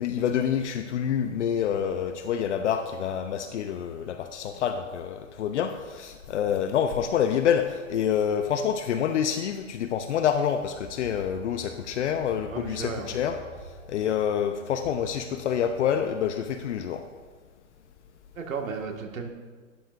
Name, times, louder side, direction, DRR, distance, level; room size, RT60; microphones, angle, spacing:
voice 1, 0.0-13.4 13.9-17.0, left 8 dB, 60° left, 7 dB, 0.8 m, -27 dB
sound 1, 10.6-16.7, right 1 dB, 15° right, 1.6 m, -48 dB
voice 2, 12.5-13.1 18.4-19.3, right 5 dB, 85° right, 2 dB, 1.9 m, -34 dB
12.0 x 12.0 x 2.6 m, 1.4 s
hypercardioid pair, 150°, 39 cm